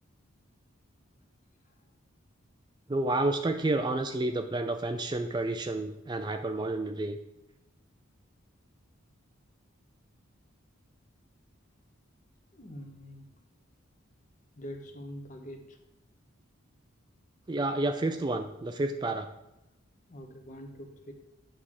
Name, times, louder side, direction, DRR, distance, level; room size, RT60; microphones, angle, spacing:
voice 1, 2.9-7.2 17.5-19.3, right 2 dB, 20° right, 7 dB, 0.3 m, -30 dB
voice 2, 12.6-13.2 14.6-15.6 20.1-21.1, equal, 35° left, 4 dB, 1.1 m, -44 dB
9.3 x 3.7 x 6.6 m, 0.89 s
head